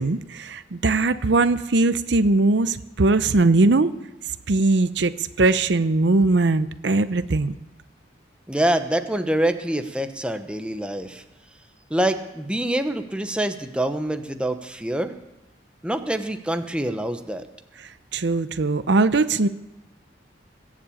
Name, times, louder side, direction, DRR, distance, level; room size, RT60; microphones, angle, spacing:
voice 1, 0.0-3.9 4.5-7.5 18.1-19.5, right 3 dB, 70° right, 13 dB, 0.7 m, -20 dB
voice 2, 8.5-11.2 11.9-15.1 15.8-17.4, right 1 dB, 5° right, 7 dB, 0.9 m, -25 dB
22.0 x 7.5 x 8.5 m, 0.95 s
head